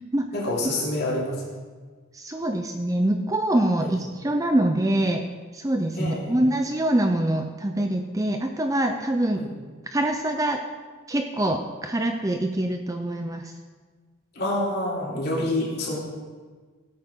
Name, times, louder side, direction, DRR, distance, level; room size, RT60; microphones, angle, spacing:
voice 1, 0.3-1.4 3.8-3.9 5.9-6.4 9.4-9.5 14.3-16.0, left 1 dB, 45° left, -5 dB, 3.5 m, -27 dB
voice 2, 2.1-5.3 5.5-9.4 9.9-10.6 11.1-13.5, right 1 dB, 15° right, 5 dB, 0.5 m, -24 dB
17.0 x 9.0 x 3.8 m, 1.5 s
head